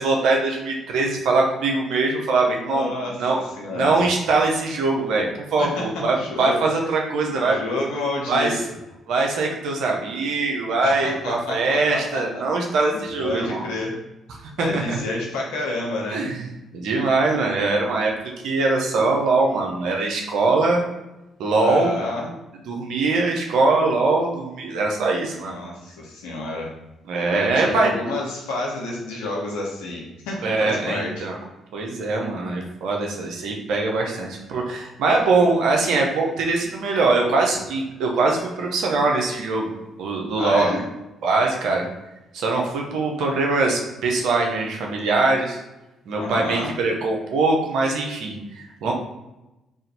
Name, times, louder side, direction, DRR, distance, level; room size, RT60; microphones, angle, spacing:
voice 1, 0.0-7.6 8.3-8.6 9.1-13.6 14.6-15.0 16.1-16.5 16.7-18.1 18.4-20.8 21.4-21.9 22.7-25.6 27.1-27.9 30.4-31.4 31.7-40.8 41.2-41.9 42.3-45.6 46.1-48.9, right 3 dB, 75° right, 1 dB, 0.9 m, -22 dB
voice 2, 2.7-3.2 3.6-4.0 5.6-5.8 6.1-6.6 7.4-8.5 10.8-12.4 13.2-13.9 14.6-16.3 21.6-22.3 25.3-26.7 27.3-31.1 35.1-35.2 40.4-40.8 46.1-46.7, left 2 dB, 85° left, -2 dB, 1.0 m, -29 dB
3.6 x 2.6 x 4.3 m, 0.97 s
supercardioid pair, 55°, 0 cm